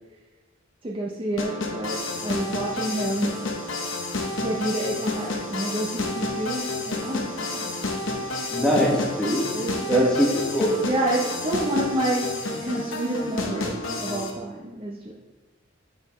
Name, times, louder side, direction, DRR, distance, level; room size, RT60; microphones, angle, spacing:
voice 1, 0.8-3.4 4.4-7.7 9.5-10.1 10.8-12.3 12.7-15.1, right 1 dB, 25° right, -3 dB, 0.6 m, -28 dB
sound 1, 1.4-14.3, left 2 dB, 75° left, 0.9 m, -30 dB
voice 2, 8.5-9.4 9.9-10.8, equal, 5° left, -4 dB, 1.5 m, -22 dB
8.9 x 5.6 x 3.1 m, 1.2 s
head